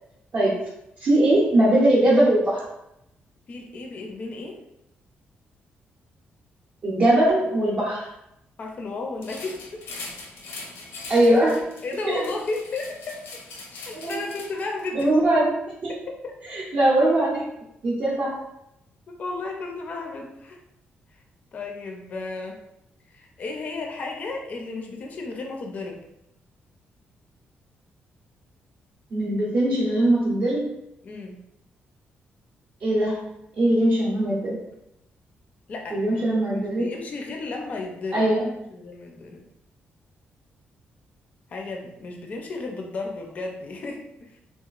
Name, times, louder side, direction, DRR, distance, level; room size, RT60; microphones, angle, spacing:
voice 1, 1.0-2.7 6.8-8.1 11.1-11.6 12.1-12.2 13.9-14.2 14.9-15.5 15.8-15.9 16.5-17.4 17.8-18.3 29.1-30.7 32.8-33.3 33.6-34.6 35.9-36.9 38.1-38.5, right 1 dB, 45° right, -6 dB, 0.5 m, -20 dB
voice 2, 3.5-4.6 8.6-9.8 11.8-13.3 13.7-15.1 16.1-16.3 19.2-20.6 21.5-22.6 23.1-26.0 31.0-31.4 35.7-36.2 36.5-38.3 38.7-39.5 41.5-44.4, left 3 dB, 40° left, 1 dB, 0.4 m, -34 dB
sound 1, 9.2-14.9, left 3 dB, 85° left, 0.6 m, -41 dB
2.9 x 2.3 x 2.4 m, 0.82 s
wide cardioid pair, 170°, 4 cm